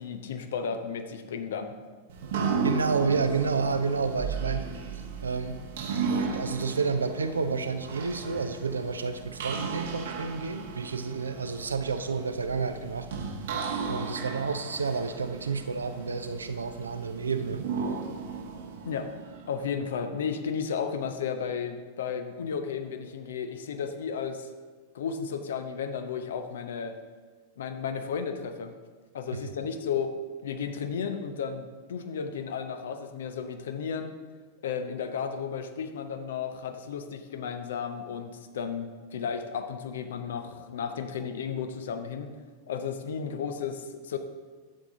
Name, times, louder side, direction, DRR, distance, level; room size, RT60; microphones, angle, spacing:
voice 1, 0.0-1.8 18.8-19.1 19.5-24.5 24.9-26.9 27.6-28.7 29.1-30.1 30.4-34.1 34.6-42.3 42.7-44.2, left 6 dB, 60° left, 8 dB, 0.7 m, -33 dB
sound 1, 2.1-19.9, right 5 dB, 60° right, 1.1 m, -35 dB
voice 2, 2.6-4.6 5.2-5.6 6.1-13.1 13.9-17.6 29.3-29.5, right 4 dB, 75° right, 9 dB, 0.6 m, -30 dB
10.0 x 7.5 x 3.7 m, 1.4 s
figure-of-eight pair, 90°, 0 cm